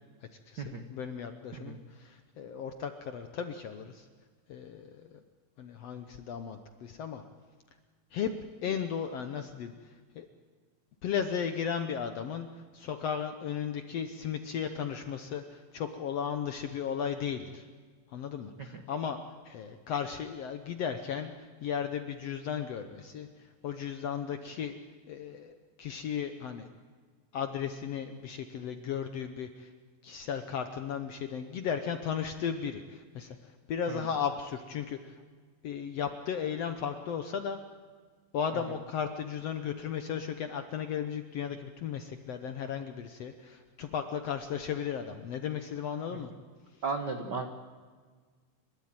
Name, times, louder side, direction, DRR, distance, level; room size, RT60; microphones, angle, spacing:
voice 1, 0.5-4.1 4.5-5.2 5.6-7.2 8.1-8.3 8.6-10.3 11.0-17.7 18.1-24.7 25.1-26.7 27.3-29.7 30.0-35.2 35.6-37.6 38.3-46.3 46.7-46.8, left 7 dB, 70° left, 7 dB, 1.5 m, -35 dB
voice 2, 46.8-47.5, right 4 dB, 85° right, 5 dB, 0.9 m, -35 dB
29.5 x 13.0 x 8.9 m, 1.5 s
omnidirectional pair, 4.0 m